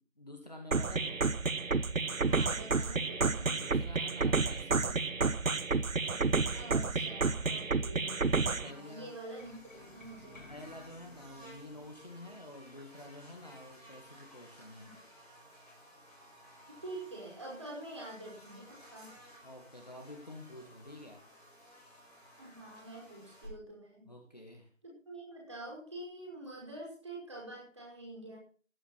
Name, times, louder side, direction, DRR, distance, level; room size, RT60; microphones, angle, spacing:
voice 1, 0.0-1.3 3.4-5.3 8.6-9.1 10.5-14.9 19.4-21.3 24.1-24.7, left 1 dB, 30° left, 2 dB, 1.8 m, -49 dB
sound 1, 0.7-8.7, right 4 dB, 80° right, 1.0 m, -30 dB
voice 2, 2.2-3.6 6.5-8.3 8.6-10.5 14.8-15.0 16.7-19.1 22.4-24.1 24.8-28.4, right 1 dB, 20° right, -3 dB, 5.3 m, -46 dB
Buzz, 8.6-23.4, equal, ahead, 2.5 m, -57 dB
sound 2, 9.1-14.8, left 2 dB, 75° left, 3.2 m, -59 dB
15.0 x 11.0 x 4.1 m, 0.41 s
figure-of-eight pair, 175°, 39 cm